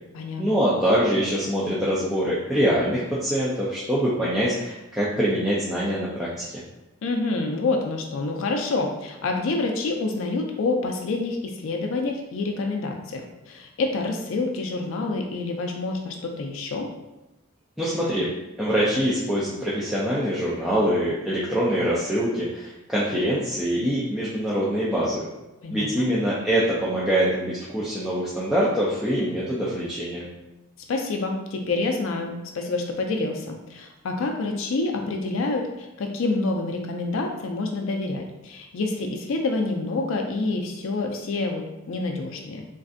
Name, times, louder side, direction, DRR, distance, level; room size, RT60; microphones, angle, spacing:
voice 1, 0.4-6.3 17.8-18.3 18.6-25.3 25.7-30.3, equal, ahead, -9 dB, 0.4 m, -24 dB
voice 2, 7.0-16.9 25.6-26.1 30.9-42.6, left 3 dB, 65° left, 3 dB, 0.4 m, -27 dB
3.1 x 2.5 x 2.5 m, 0.99 s
head